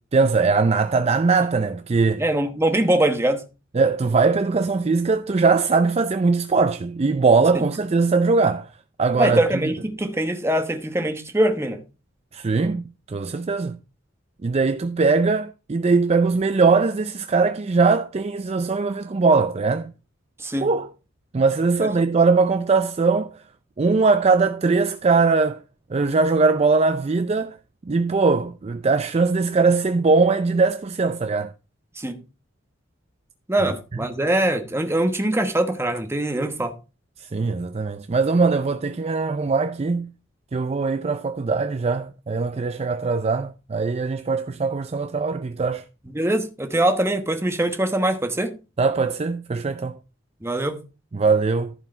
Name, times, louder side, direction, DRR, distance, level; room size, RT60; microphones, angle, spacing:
voice 1, 0.1-2.2 3.7-8.7 9.0-9.4 12.3-13.8 14.4-19.9 20.6-20.9 21.3-23.4 23.8-25.6 25.9-27.6 27.9-31.5 33.6-33.7 37.2-40.1 40.5-45.8 48.8-49.9 51.1-51.7, right 4 dB, 30° right, 0.4 m, -21 dB
voice 2, 2.2-3.4 7.5-7.6 9.2-11.8 20.4-20.7 21.8-21.9 32.0-32.2 33.5-36.7 46.1-48.5 50.4-50.8, right 1 dB, 15° right, 1.1 m, -22 dB
14.0 x 4.7 x 4.4 m
head